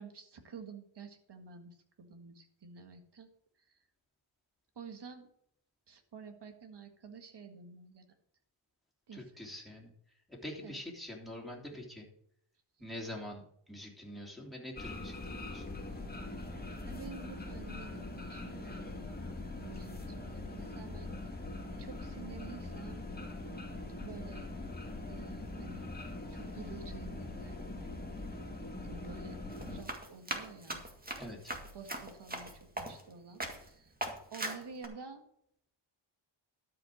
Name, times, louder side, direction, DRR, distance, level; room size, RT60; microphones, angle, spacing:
voice 1, 0.0-3.3 3.6-3.8 4.8-5.3 5.9-8.1 9.1-9.3 10.6-10.8 16.9-19.1 19.6-21.1 21.8-23.1 24.0-24.5 25.1-25.9 26.3-28.1 28.8-30.8 31.7-34.0 34.3-35.2, right 5 dB, 55° right, 5 dB, 1.9 m, -50 dB
voice 2, 9.1-9.9 10.3-12.0 12.8-13.4 13.7-15.7 25.8-26.0 31.2-31.4, left 1 dB, ahead, -1 dB, 3.3 m, -45 dB
sound 1, 14.8-29.8, left 2 dB, 20° left, 1.9 m, -42 dB
Run, 29.5-33.1 33.4-33.7 34.0-34.9, right 1 dB, 20° right, 1.9 m, -40 dB
12.5 x 5.4 x 6.5 m, 0.68 s
wide cardioid pair, 105°, 49 cm